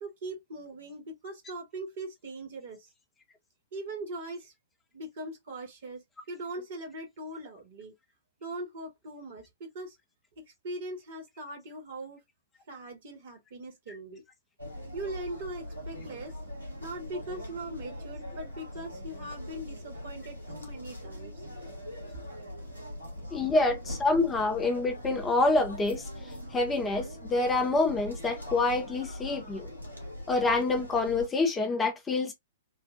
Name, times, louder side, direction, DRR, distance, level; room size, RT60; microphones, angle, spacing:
voice 1, 0.0-2.9 3.7-4.5 4.9-7.9 8.4-10.0 10.4-12.2 12.7-14.2 14.9-16.4 16.8-21.4, right 2 dB, 50° right, 1.4 m, -40 dB
sound 1, 14.6-31.3, left 1 dB, 85° right, 1.3 m, -42 dB
voice 2, 23.3-26.0 26.5-29.7 30.3-32.3, left 3 dB, 15° left, 0.6 m, -27 dB
3.9 x 2.2 x 2.5 m
figure-of-eight pair, 110°, 0 cm